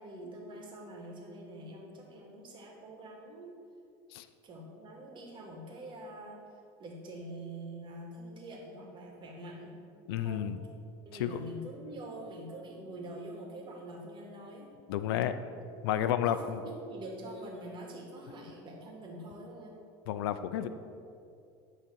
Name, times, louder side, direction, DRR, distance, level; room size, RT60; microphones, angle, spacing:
voice 1, 0.0-3.5 4.4-6.4 6.8-9.8 10.2-10.5 11.0-14.7 16.2-19.7, right 1 dB, 40° right, -1 dB, 2.3 m, -45 dB
voice 2, 10.1-10.6 11.1-11.4 14.9-15.4 15.8-16.6 20.1-20.7, left 10 dB, 85° left, 11 dB, 0.5 m, -31 dB
10.5 x 4.0 x 7.1 m, 2.5 s
supercardioid pair, 105°, 12 cm